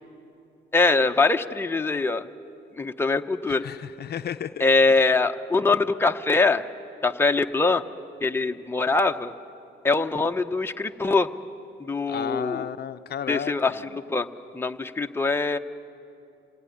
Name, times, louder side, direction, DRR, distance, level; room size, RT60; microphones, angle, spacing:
voice 1, 0.7-2.3 2.7-3.6 4.6-6.6 7.0-7.8 8.2-9.3 9.8-11.3 11.8-12.7 13.3-14.3 14.5-15.6, left 3 dB, 10° left, 5 dB, 0.9 m, -23 dB
voice 2, 3.6-5.0 12.1-13.8, left 9 dB, 55° left, 10 dB, 0.6 m, -33 dB
26.5 x 19.0 x 9.9 m, 2.7 s
cardioid pair, 90°, 20 cm